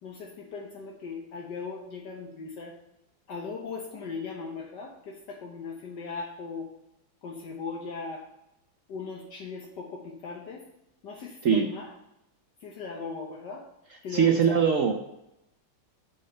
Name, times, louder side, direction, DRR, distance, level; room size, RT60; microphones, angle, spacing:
voice 1, 0.0-2.8 3.3-6.7 7.2-8.3 8.9-10.6 11.0-11.9 12.6-13.7 14.0-14.6, left 4 dB, 65° left, 0 dB, 1.6 m, -38 dB
voice 2, 14.1-14.9, right 7 dB, 65° right, 4 dB, 0.8 m, -21 dB
7.8 x 6.4 x 5.4 m, 0.86 s
omnidirectional pair, 2.1 m